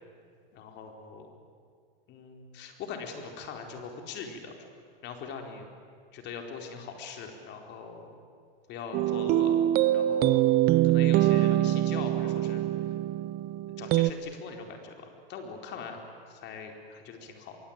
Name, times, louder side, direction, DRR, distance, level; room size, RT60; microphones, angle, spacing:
voice 1, 0.5-1.3 2.1-4.5 5.0-5.7 6.1-8.1 8.7-9.6 9.9-10.5 10.8-12.6 13.8-16.0 16.3-17.6, left 5 dB, 40° left, 4 dB, 4.4 m, -41 dB
sound 1, 8.9-14.1, right 14 dB, 35° right, 0.7 m, -24 dB
25.5 x 23.0 x 9.0 m, 2.2 s
hypercardioid pair, 130°, 29 cm